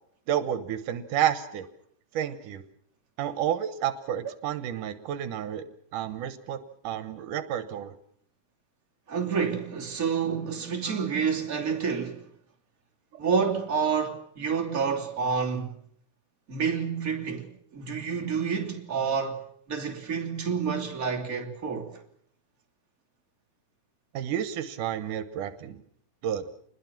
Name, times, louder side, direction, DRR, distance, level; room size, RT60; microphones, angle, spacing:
voice 1, 0.3-1.7 2.1-2.6 3.2-5.7 5.9-8.0 10.9-11.0 24.1-25.8 26.2-26.5, right 10 dB, 80° right, 2.6 m, -30 dB
voice 2, 9.1-12.3 13.2-15.8 16.5-19.4 19.7-22.0, right 6 dB, 25° right, 3.1 m, -29 dB
27.5 x 21.0 x 6.0 m
omnidirectional pair, 3.7 m